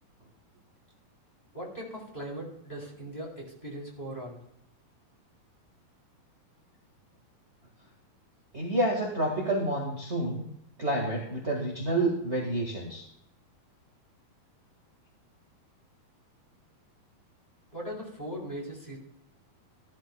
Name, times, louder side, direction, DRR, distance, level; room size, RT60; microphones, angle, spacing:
voice 1, 1.5-4.4 17.7-19.0, equal, 10° left, -4 dB, 3.3 m, -39 dB
voice 2, 8.5-10.4 10.8-13.0, right 1 dB, 30° right, -2 dB, 1.2 m, -29 dB
15.5 x 13.0 x 2.3 m, 0.75 s
omnidirectional pair, 4.3 m